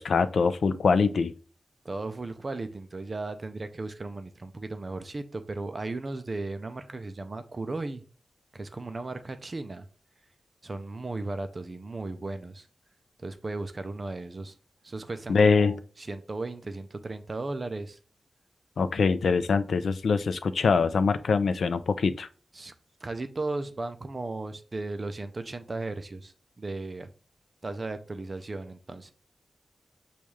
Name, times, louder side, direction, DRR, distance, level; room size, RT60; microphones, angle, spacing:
voice 1, 0.0-1.3 15.3-15.8 18.8-22.3, left 5 dB, 70° left, 12 dB, 0.4 m, -23 dB
voice 2, 1.8-8.0 8.5-9.9 10.6-12.7 13.2-14.6 14.8-18.0 22.5-22.7 23.0-27.1 27.6-29.1, right 2 dB, 30° right, 9 dB, 0.4 m, -36 dB
6.9 x 2.3 x 3.1 m, 0.38 s
wide cardioid pair, 145°, 0 cm